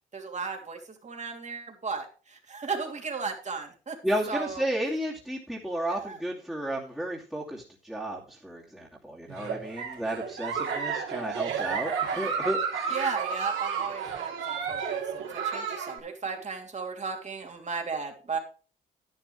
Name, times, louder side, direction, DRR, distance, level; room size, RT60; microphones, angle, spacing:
voice 1, 0.1-4.0 4.3-4.7 5.9-6.2 12.9-18.4, right 5 dB, 35° right, 3 dB, 3.0 m, -35 dB
voice 2, 4.0-12.9, right 1 dB, 5° right, -6 dB, 2.7 m, -33 dB
Giggle, 9.3-16.0, right 6 dB, 80° right, 3.4 m, -32 dB
11.0 x 10.5 x 3.3 m, 0.37 s
cardioid pair, 90°, 20 cm